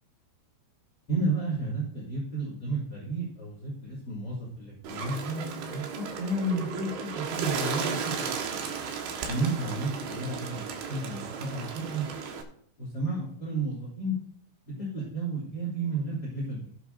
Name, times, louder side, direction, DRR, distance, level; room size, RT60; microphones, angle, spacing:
voice 1, 1.1-6.9 7.1-8.6 9.3-12.0 12.8-14.1 14.8-16.7, right 2 dB, 30° left, -5 dB, 2.2 m, -32 dB
Bird, 4.8-12.4, right 6 dB, 75° right, 3.7 m, -35 dB
17.5 x 8.2 x 2.7 m, 0.63 s
omnidirectional pair, 5.9 m